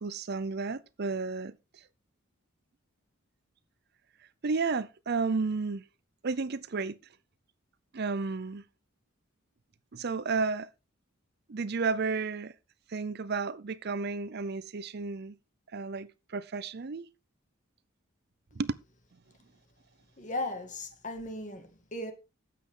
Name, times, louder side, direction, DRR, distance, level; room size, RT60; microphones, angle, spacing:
voice 1, 0.0-1.8 4.4-5.8 6.2-7.0 7.9-8.6 9.9-10.7 11.5-12.5 12.9-15.3 15.7-17.1 18.6-18.7, right 4 dB, 50° right, 0.6 m, -32 dB
voice 2, 20.2-22.1, left 1 dB, 35° left, 2.2 m, -37 dB
12.5 x 8.4 x 3.8 m
head